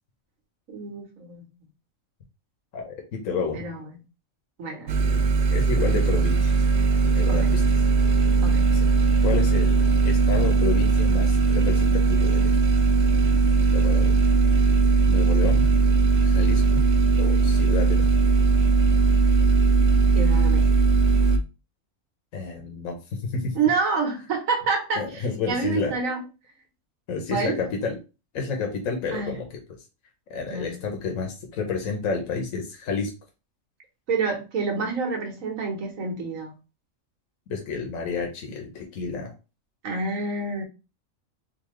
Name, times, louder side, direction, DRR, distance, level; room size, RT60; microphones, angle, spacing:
voice 1, 0.7-1.4 3.5-3.8 4.6-5.0 7.3-7.5 8.4-8.7 20.1-20.7 23.5-26.2 27.3-27.6 29.1-29.4 30.5-30.7 34.1-36.5 39.8-40.6, right 4 dB, 80° right, 2 dB, 1.5 m, -28 dB
voice 2, 2.7-3.7 5.0-5.2 5.5-6.6 7.0-7.6 9.2-12.5 13.7-14.1 15.1-15.7 16.2-16.8 17.2-18.1 22.3-23.0 23.2-23.5 25.0-25.9 27.1-28.0 28.3-29.5 30.3-33.1 37.5-39.3, left 5 dB, 80° left, 2 dB, 1.3 m, -30 dB
sound 1, 4.9-21.4, right 4 dB, 65° right, 0.9 m, -19 dB
3.9 x 2.8 x 3.1 m, 0.29 s
omnidirectional pair, 1.4 m